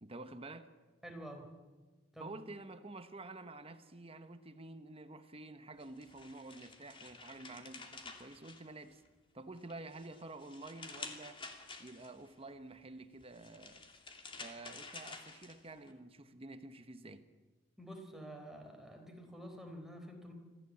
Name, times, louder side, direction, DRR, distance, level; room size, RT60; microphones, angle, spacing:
voice 1, 0.0-0.7 2.2-9.0 9.3-11.4 11.8-13.8 14.4-17.3, right 2 dB, 30° right, 1.1 m, -49 dB
voice 2, 1.0-1.5 2.1-2.3 17.8-20.3, equal, ahead, 4.2 m, -48 dB
sound 1, 5.8-9.2 9.6-12.3 13.2-15.9, left 4 dB, 25° left, 2.6 m, -50 dB
25.5 x 15.5 x 8.6 m
head